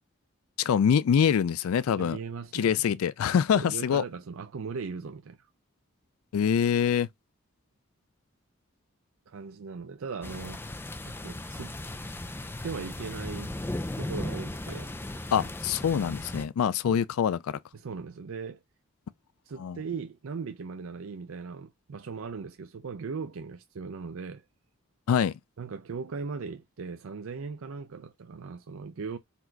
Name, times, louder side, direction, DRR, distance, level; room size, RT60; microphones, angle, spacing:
voice 1, 0.6-2.2 2.5-4.0 6.3-7.1 15.3-17.6 19.6-19.8 25.1-25.3, left 8 dB, 85° left, 0.3 m, -25 dB
voice 2, 2.0-3.0 3.5-5.4 9.3-10.6 11.1-11.7 12.6-13.5 14.0-14.9 16.8-17.0 17.7-18.6 19.5-24.4 25.6-29.2, right 5 dB, 75° right, 0.5 m, -38 dB
sound 1, 10.2-16.5, left 1 dB, 10° left, 0.4 m, -37 dB
4.1 x 2.6 x 4.4 m
head